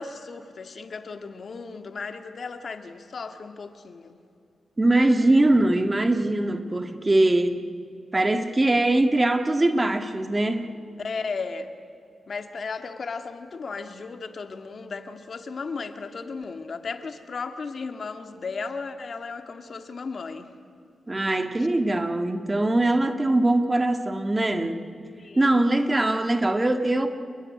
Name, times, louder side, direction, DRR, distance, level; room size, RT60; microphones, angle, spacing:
voice 1, 0.0-4.2 7.0-7.4 11.0-11.7 12.3-20.5 21.6-21.7 25.2-25.6, left 4 dB, 55° left, 7 dB, 1.9 m, -35 dB
voice 2, 4.8-7.6 8.1-10.7 21.1-24.9 25.4-27.1, right 2 dB, 20° right, 7 dB, 1.7 m, -22 dB
29.0 x 20.5 x 9.5 m, 2.4 s
cardioid pair, 85°, 0 cm